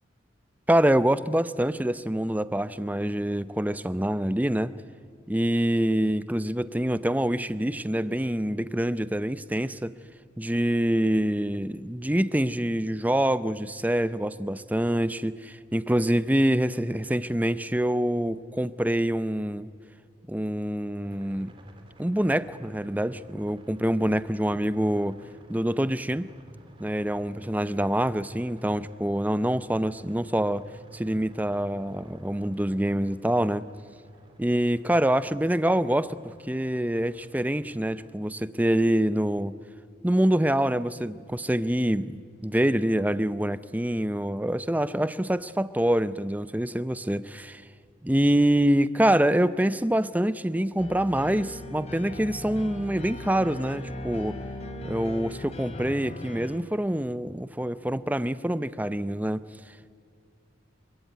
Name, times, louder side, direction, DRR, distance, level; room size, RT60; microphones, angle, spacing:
voice 1, 0.7-4.7 5.3-9.9 10.4-19.7 20.3-21.5 22.0-25.2 25.5-26.3 26.8-30.7 30.9-33.7 34.4-39.5 40.0-47.6 48.0-54.4 54.8-59.4, right 1 dB, 10° right, 14 dB, 0.6 m, -25 dB
sound 1, 21.0-38.1, right 1 dB, 25° right, 2.9 m, -51 dB
sound 2, 50.8-56.6, left 1 dB, 30° left, 3.1 m, -38 dB
26.5 x 24.5 x 9.3 m, 2.4 s
head